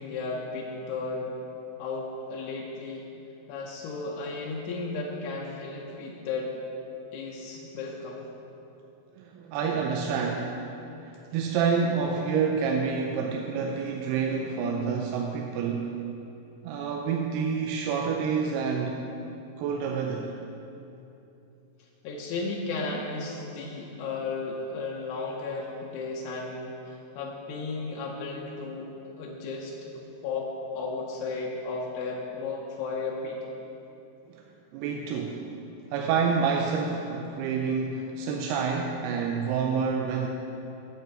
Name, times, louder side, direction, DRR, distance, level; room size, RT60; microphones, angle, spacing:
voice 1, 0.0-1.4 1.8-3.1 3.5-6.5 7.1-8.3 22.0-28.9 29.2-33.4, left 3 dB, 85° left, -2 dB, 2.8 m, -34 dB
voice 2, 9.2-10.5 11.3-15.9 16.6-19.0 19.6-20.3 34.3-34.4 34.7-35.4 35.9-40.3, right 5 dB, 85° right, 1 dB, 2.6 m, -28 dB
8.5 x 5.4 x 7.8 m, 2.9 s
omnidirectional pair, 4.5 m